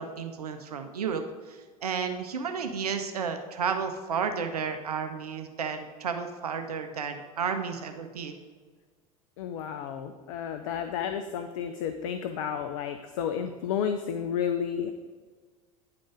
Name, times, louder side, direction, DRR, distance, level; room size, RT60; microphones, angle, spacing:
voice 1, 0.0-8.3, right 6 dB, 80° right, 6 dB, 0.6 m, -32 dB
voice 2, 9.4-14.9, left 8 dB, 60° left, 8 dB, 0.5 m, -31 dB
9.6 x 3.8 x 4.9 m, 1.5 s
figure-of-eight pair, 75°, 19 cm